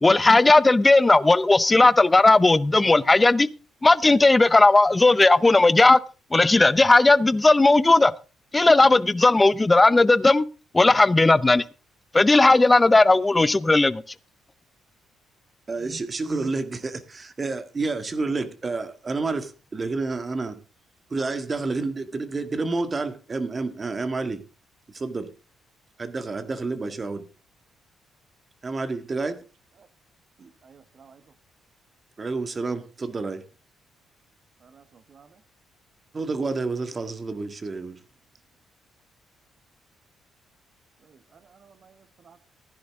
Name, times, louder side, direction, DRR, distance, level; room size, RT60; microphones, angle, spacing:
voice 1, 0.0-3.5 3.8-6.0 6.3-8.1 8.5-10.5 10.7-11.6 12.1-14.0, left 2 dB, 20° left, 0.7 m, -16 dB
voice 2, 15.7-20.6 21.1-24.4 24.9-25.3 26.0-27.3 28.6-29.4 32.2-33.4 36.1-38.0, right 3 dB, 30° right, 1.8 m, -29 dB
voice 3, 30.4-31.2 34.6-35.3 41.0-42.4, right 6 dB, 50° right, 1.2 m, -54 dB
15.0 x 11.0 x 3.7 m
cardioid pair, 90°, 0 cm